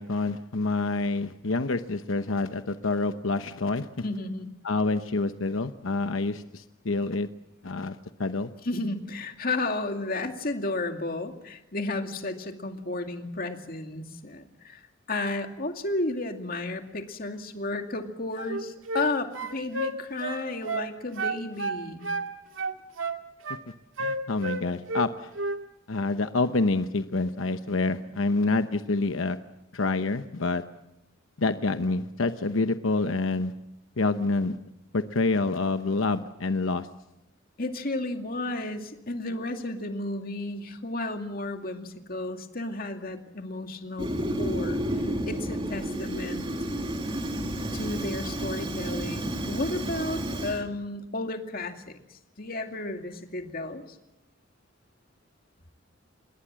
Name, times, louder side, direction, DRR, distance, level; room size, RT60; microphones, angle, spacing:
voice 1, 0.0-3.9 4.6-7.3 7.6-8.5 23.5-23.6 24.0-25.3 25.9-29.4 29.7-30.6 31.4-33.5 34.0-34.6 34.9-36.9, left 3 dB, 85° left, 9 dB, 0.9 m, -27 dB
voice 2, 4.0-4.5 8.6-14.8 15.1-22.1 37.6-44.1 44.4-44.8 45.3-46.5 47.7-53.8, left 2 dB, 45° left, 5 dB, 2.4 m, -33 dB
sound 1, 18.4-19.1 19.3-20.9 21.2-22.3 22.6-23.6 24.0-25.1 25.4-25.6, right 3 dB, 90° right, 2.1 m, -31 dB
Fire, 44.0-50.6, right 1 dB, 25° right, 2.6 m, -31 dB
27.0 x 21.5 x 7.6 m, 0.89 s
head